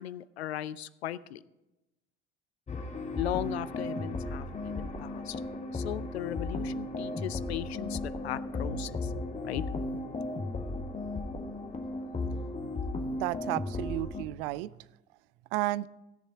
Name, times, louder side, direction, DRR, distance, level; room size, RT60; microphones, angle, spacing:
voice 1, 0.0-1.4 3.2-5.4 5.7-9.1 9.4-10.0, left 12 dB, 80° left, 18 dB, 0.5 m, -37 dB
sound 1, 2.7-14.2, left 2 dB, 20° left, 1.5 m, -35 dB
voice 2, 13.2-14.7 15.5-15.9, right 18 dB, 60° right, 20 dB, 0.4 m, -32 dB
16.5 x 6.9 x 4.7 m, 0.97 s
figure-of-eight pair, 60°, 32 cm